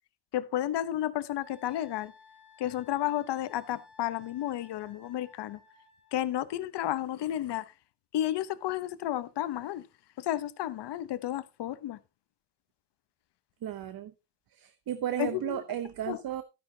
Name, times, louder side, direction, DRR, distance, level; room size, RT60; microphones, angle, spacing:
voice 1, 0.3-2.1 2.6-5.6 6.1-7.7 8.1-9.8 10.2-12.0 15.2-15.6 16.1-16.4, left 12 dB, 70° left, 0.9 m, -32 dB
Wind instrument woodwind instrument, 1.4-6.3, left 4 dB, 75° right, 4.7 m, -57 dB
voice 2, 13.6-14.1 14.5-16.4, right 10 dB, 55° right, 0.8 m, -34 dB
12.5 x 9.9 x 2.8 m
cardioid pair, 110°, 43 cm